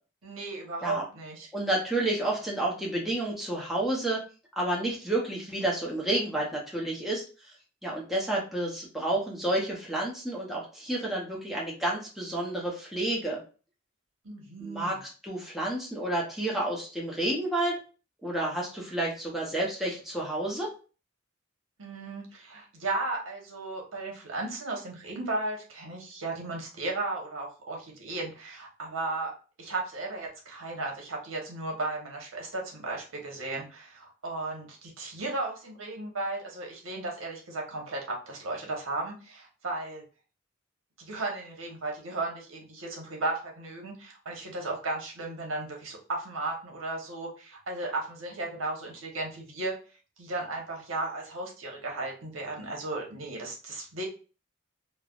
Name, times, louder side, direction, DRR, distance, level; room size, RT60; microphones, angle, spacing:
voice 1, 0.2-1.5 14.2-15.0 21.8-29.3 29.6-40.0 41.0-49.7 50.2-54.1, right 2 dB, 90° right, 0 dB, 1.0 m, -35 dB
voice 2, 1.5-4.2 4.6-7.6 7.8-13.4 14.6-17.8 18.2-20.7, right 1 dB, ahead, -4 dB, 0.6 m, -30 dB
3.2 x 2.0 x 2.3 m, 0.36 s
head